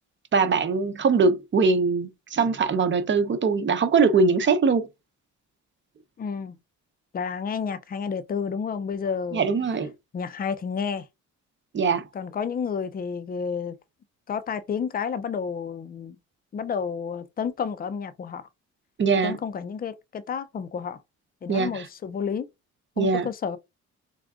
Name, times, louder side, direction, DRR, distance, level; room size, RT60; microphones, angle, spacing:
voice 1, 0.3-4.9 9.3-9.9 11.7-12.0 19.0-19.4 21.5-21.9 23.0-23.3, right 4 dB, 40° right, 0.7 m, -22 dB
voice 2, 6.2-6.6 7.1-9.4 10.1-11.1 12.1-13.8 14.3-16.2 16.5-18.4 19.2-21.0 21.4-22.5 23.0-23.6, left 6 dB, 30° left, 0.5 m, -30 dB
3.7 x 2.4 x 3.6 m
cardioid pair, 90°, 30 cm